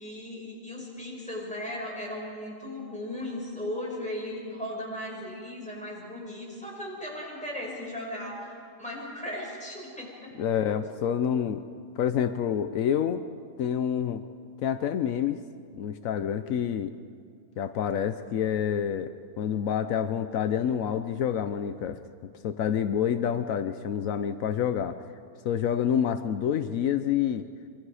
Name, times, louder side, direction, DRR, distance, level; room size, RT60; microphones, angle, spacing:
voice 1, 0.0-10.3, left 1 dB, 5° left, -4 dB, 6.0 m, -37 dB
voice 2, 10.4-11.6 12.0-13.2 13.6-14.2 14.6-15.4 15.8-16.9 17.6-25.0 25.4-27.5, left 8 dB, 80° left, 10 dB, 1.1 m, -28 dB
26.0 x 24.0 x 4.9 m, 2.2 s
omnidirectional pair, 1.4 m